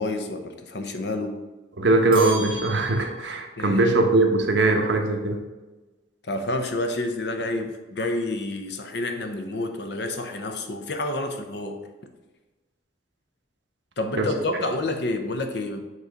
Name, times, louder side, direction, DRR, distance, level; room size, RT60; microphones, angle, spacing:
voice 1, 0.0-1.4 3.6-3.8 6.2-11.9 14.0-15.8, left 2 dB, 60° left, 6 dB, 0.7 m, -29 dB
voice 2, 1.8-5.4 7.5-7.7 14.2-14.3, right 2 dB, 70° right, 4 dB, 0.9 m, -21 dB
sound 1, 2.1-3.5, right 2 dB, 30° right, 1.4 m, -37 dB
8.3 x 3.2 x 5.1 m, 1.2 s
head